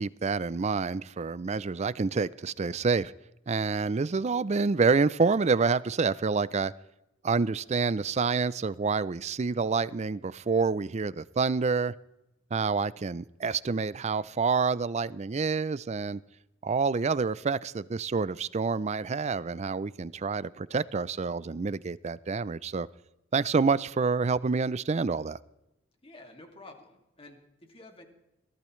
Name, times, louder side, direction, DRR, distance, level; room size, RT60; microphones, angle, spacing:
voice 1, 0.0-3.1 3.5-6.7 7.2-11.9 12.5-16.2 16.6-22.9 23.3-25.4, right 4 dB, 35° right, 0.4 m, -28 dB
voice 2, 26.0-28.1, left 2 dB, 30° left, 2.4 m, -50 dB
22.0 x 15.5 x 3.2 m
head